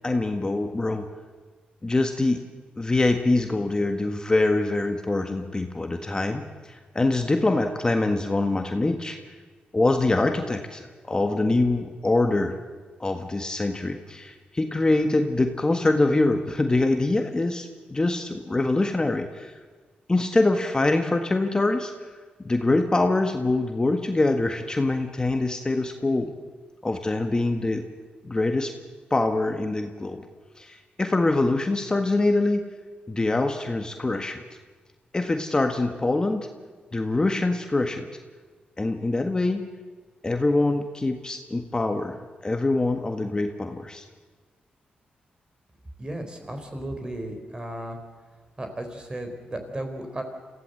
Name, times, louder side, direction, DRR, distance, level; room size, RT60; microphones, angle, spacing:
voice 1, 0.0-1.0 1.8-2.4 2.8-9.2 9.7-12.6 13.0-19.5 20.1-21.9 22.4-26.3 26.8-27.8 28.2-28.7 29.1-30.2 30.6-32.6 33.1-34.4 35.1-36.5 36.9-38.1 38.8-39.6 40.2-42.2 42.4-44.0, left 2 dB, 25° left, 5 dB, 1.6 m, -24 dB
voice 2, 46.0-48.0 48.6-50.2, right 1 dB, 25° right, 5 dB, 4.2 m, -34 dB
26.5 x 15.5 x 7.9 m, 1.4 s
cardioid pair, 80°, 3 cm